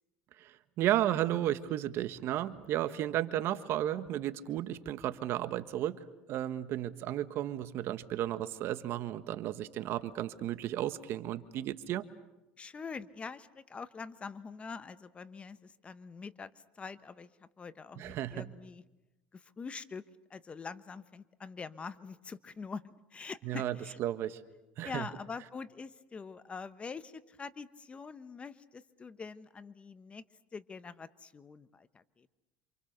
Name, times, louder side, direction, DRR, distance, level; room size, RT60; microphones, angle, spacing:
voice 1, 0.4-12.1 18.0-18.5 23.4-24.4 24.8-25.1, right 12 dB, 55° right, 11 dB, 1.5 m, -33 dB
voice 2, 12.6-18.8 19.3-20.0 20.3-24.0 24.8-30.2 30.5-32.3, left 5 dB, 25° left, 14 dB, 1.1 m, -44 dB
28.0 x 27.0 x 6.7 m, 0.99 s
supercardioid pair, 105°, 5 cm